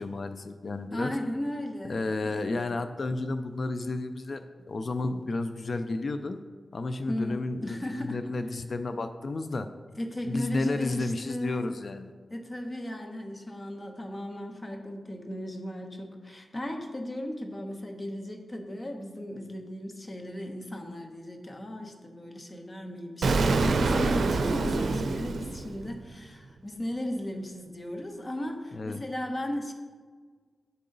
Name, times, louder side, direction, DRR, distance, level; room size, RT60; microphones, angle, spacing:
voice 1, 0.0-1.1 1.8-6.4 6.7-9.7 10.3-12.1 28.7-29.0, left 2 dB, 55° left, 9 dB, 0.4 m, -32 dB
voice 2, 0.9-2.7 7.1-8.2 10.0-11.7 12.3-29.7, left 1 dB, 30° left, 3 dB, 1.0 m, -36 dB
Explosion, 23.2-26.1, right 3 dB, 75° right, 0.5 m, -26 dB
11.0 x 3.8 x 3.9 m, 1.5 s
cardioid pair, 65°, 0 cm